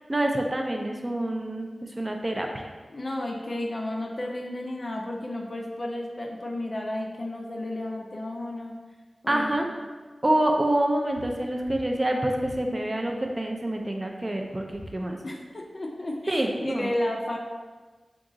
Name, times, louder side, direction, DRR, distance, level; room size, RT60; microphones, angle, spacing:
voice 1, 0.1-2.7 9.3-9.7 10.2-15.2 16.3-16.9, right 1 dB, 25° right, 2 dB, 0.4 m, -27 dB
voice 2, 2.9-8.7 9.2-9.7 15.2-17.4, left 1 dB, 40° left, 1 dB, 0.5 m, -32 dB
sound 1, 11.1-11.4 11.6-11.9 12.4-12.6 14.7-15.0, left 1 dB, 75° left, 0.9 m, -43 dB
3.7 x 2.3 x 3.9 m, 1.3 s
wide cardioid pair, 95°, 0 cm